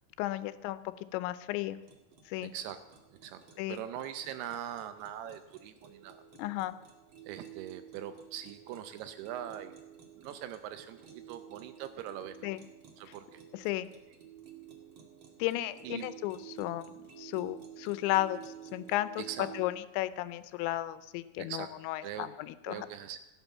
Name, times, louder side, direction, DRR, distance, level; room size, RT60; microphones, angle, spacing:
voice 1, 0.2-0.8 1.1-1.8 2.3-2.5 3.6-3.8 6.4-6.8 12.4-12.6 13.5-13.9 15.4-19.2 19.5-22.9, left 16 dB, 85° left, 14 dB, 3.0 m, -34 dB
sound 1, 1.8-19.7, right 10 dB, 55° right, 1.4 m, -52 dB
voice 2, 3.7-6.2 7.3-9.8 10.2-11.0 11.3-12.5 13.0-13.4 15.8-16.1 19.2-19.5 21.4-21.7 22.0-22.3 22.7-23.2, right 10 dB, 80° right, 10 dB, 2.4 m, -41 dB
16.0 x 11.0 x 7.2 m, 1.0 s
omnidirectional pair, 5.1 m